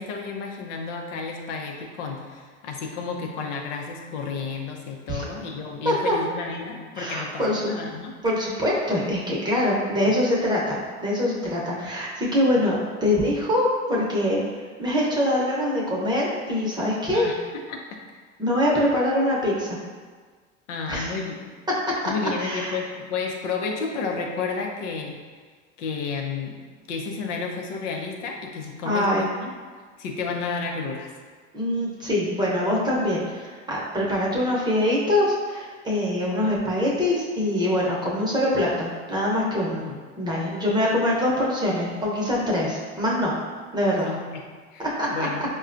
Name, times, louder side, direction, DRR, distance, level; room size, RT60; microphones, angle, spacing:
voice 1, 0.0-8.1 10.1-10.2 17.1-17.4 17.7-18.2 20.7-21.5 22.1-25.2 25.8-26.6 26.9-29.5 30.0-31.1 39.8-40.0 44.0-44.4 44.7-45.4, left 4 dB, 85° left, 1 dB, 0.6 m, -31 dB
voice 2, 5.8-6.2 7.0-7.6 8.2-17.3 18.4-19.8 20.9-21.1 22.4-22.7 28.8-29.3 31.5-39.9 40.2-43.4 43.7-44.1 45.0-45.1, left 1 dB, 10° right, -5 dB, 0.7 m, -24 dB
4.4 x 2.2 x 2.5 m, 1.5 s
supercardioid pair, 110°, 35 cm